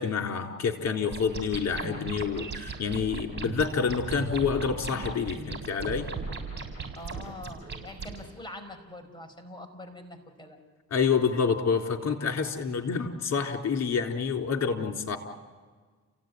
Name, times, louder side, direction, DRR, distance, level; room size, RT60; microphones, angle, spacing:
voice 1, 0.0-6.1 10.9-15.2, left 6 dB, 60° left, 2 dB, 3.9 m, -28 dB
sound 1, 1.1-8.2, right 4 dB, 35° right, 7.1 m, -37 dB
voice 2, 7.0-10.6, left 1 dB, 15° left, 3 dB, 5.0 m, -44 dB
29.0 x 17.5 x 9.4 m, 1.4 s
cardioid pair, 90°, 30 cm